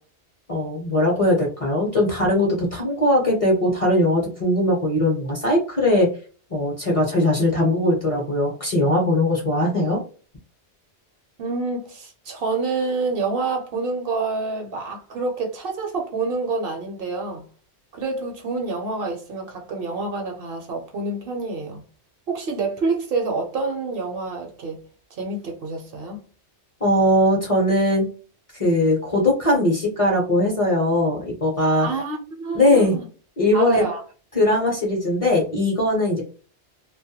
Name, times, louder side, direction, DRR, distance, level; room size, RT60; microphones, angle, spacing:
voice 1, 0.5-6.1 6.5-10.0 26.8-28.1 28.5-31.9 32.5-33.0 33.4-33.9 34.3-36.2, left 1 dB, 35° left, 0.6 m, -20 dB
voice 2, 11.4-17.4 17.9-21.8 22.3-24.8 25.1-26.2 31.8-33.1 33.5-34.0, right 3 dB, 60° right, 0.7 m, -27 dB
2.2 x 2.1 x 2.7 m
omnidirectional pair, 1.1 m